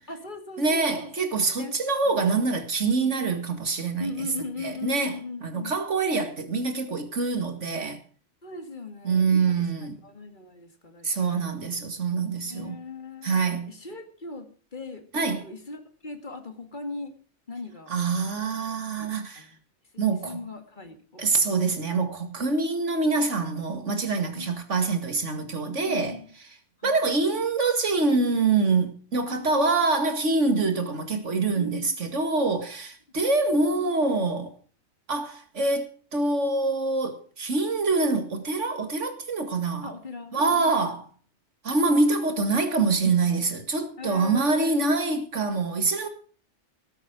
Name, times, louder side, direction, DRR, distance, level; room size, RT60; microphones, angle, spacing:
voice 1, 0.1-1.1 1.6-1.8 2.0-2.4 4.0-5.8 8.4-9.7 10.0-11.5 12.4-13.4 13.7-17.1 17.5-17.9 19.0-19.6 19.9-21.8 24.3-24.7 25.8-26.3 26.8-27.2 29.3-29.8 31.1-31.2 31.5-31.9 33.2-33.3 39.8-40.9 44.0-44.9, left 3 dB, 40° left, 2.2 m, -39 dB
voice 2, 0.6-4.1 4.6-5.1 5.4-8.0 9.0-9.9 11.0-12.8 13.2-13.7 15.1-15.4 17.9-19.4 20.0-20.4 21.2-26.2 26.8-34.5 35.1-39.9 40.3-41.0 41.6-46.1, right 3 dB, 80° right, 2.4 m, -25 dB
18.5 x 8.2 x 6.2 m
omnidirectional pair, 1.2 m